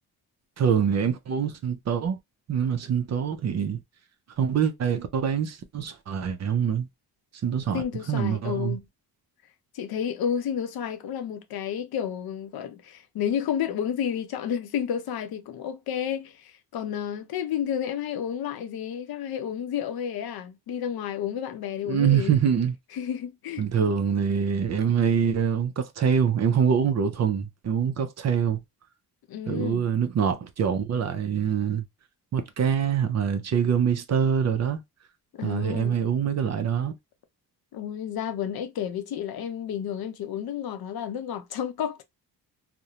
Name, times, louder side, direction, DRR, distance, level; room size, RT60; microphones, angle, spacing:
voice 1, 0.6-2.2 2.5-3.8 4.4-6.9 7.4-7.8 8.1-8.8 21.9-22.7 23.6-28.6 29.5-31.8 32.3-34.8 35.4-36.9, right 7 dB, 45° right, 0.5 m, -24 dB
voice 2, 7.7-8.8 9.7-22.4 22.9-23.7 29.3-29.8 35.3-36.0 37.7-42.0, left 9 dB, 65° left, 0.6 m, -31 dB
2.5 x 2.1 x 2.8 m
cardioid pair, 120°, 39 cm